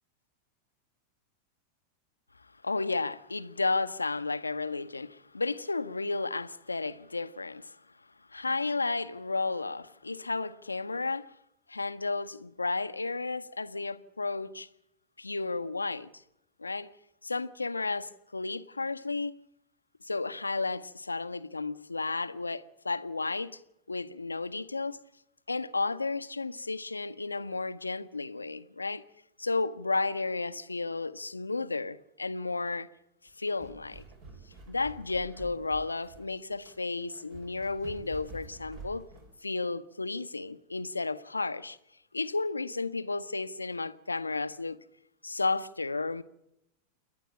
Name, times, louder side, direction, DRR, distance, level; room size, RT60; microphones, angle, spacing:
voice 1, 2.6-7.8 8.3-11.3 11.7-14.7 15.2-16.1 16.6-16.9 17.2-19.4 20.0-23.6 23.9-25.0 25.5-29.0 29.4-32.9 33.4-34.0 34.7-39.0 39.4-41.8 42.1-44.8 45.2-46.2, left 3 dB, 80° left, 0.8 m, -33 dB
sound 1, 33.3-39.4, right 3 dB, 45° right, 5.1 m, -49 dB
28.0 x 11.5 x 8.7 m
figure-of-eight pair, 90°, 0 cm